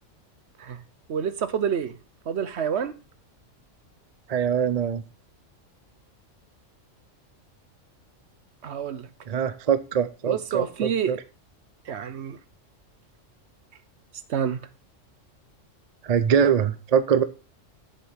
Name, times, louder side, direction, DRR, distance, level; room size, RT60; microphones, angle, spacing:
voice 1, 1.1-2.0 2.3-3.0 8.6-9.1 10.3-11.1 11.9-12.4 14.3-14.6, right 8 dB, 60° right, 1.0 m, -28 dB
voice 2, 4.3-5.0 9.3-11.2 16.0-17.2, right 7 dB, 45° right, 0.5 m, -23 dB
7.7 x 7.1 x 5.7 m
omnidirectional pair, 1.3 m